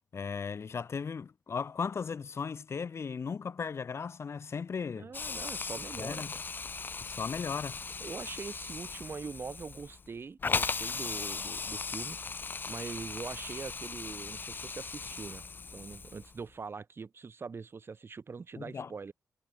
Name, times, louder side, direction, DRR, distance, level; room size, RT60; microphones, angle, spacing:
voice 1, 0.1-5.1 6.0-6.3 7.0-7.8 18.6-18.9, left 5 dB, 55° left, 1.1 m, -36 dB
voice 2, 5.0-6.4 8.0-15.4 15.7-19.1, right 5 dB, 45° right, 1.5 m, -43 dB
Hiss, 5.1-16.4, left 4 dB, 35° left, 0.4 m, -38 dB
cardioid pair, 85°, 5 cm